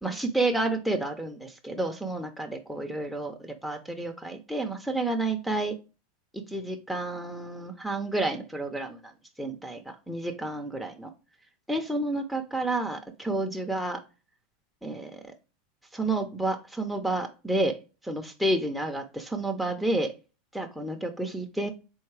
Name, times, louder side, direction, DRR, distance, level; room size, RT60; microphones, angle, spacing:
voice 1, 0.0-5.7 6.3-9.1 9.4-11.1 11.7-14.0 14.8-15.2 15.9-17.8 18.0-20.1 20.5-21.7, right 2 dB, ahead, 7 dB, 0.8 m, -30 dB
4.1 x 3.5 x 3.3 m, 0.30 s
hypercardioid pair, 100°, 0 cm